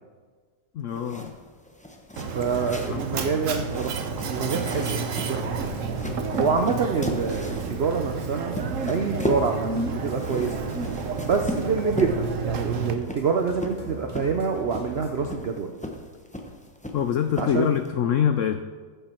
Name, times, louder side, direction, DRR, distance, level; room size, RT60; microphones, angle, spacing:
voice 1, 0.7-1.3 2.9-3.2 16.9-18.6, left 9 dB, 90° left, 8 dB, 0.6 m, -25 dB
sound 1, 0.9-17.9, left 1 dB, 10° left, 0.4 m, -37 dB
Mechanisms, 2.2-12.9, right 5 dB, 55° right, 1.0 m, -30 dB
voice 2, 2.4-5.7 6.4-8.6 8.9-10.6 11.2-15.7 17.4-17.7, right 5 dB, 75° right, 5 dB, 0.5 m, -27 dB
sound 2, 5.4-15.3, right 1 dB, 25° right, 2.1 m, -41 dB
14.5 x 7.0 x 4.4 m, 1.5 s
omnidirectional pair, 1.9 m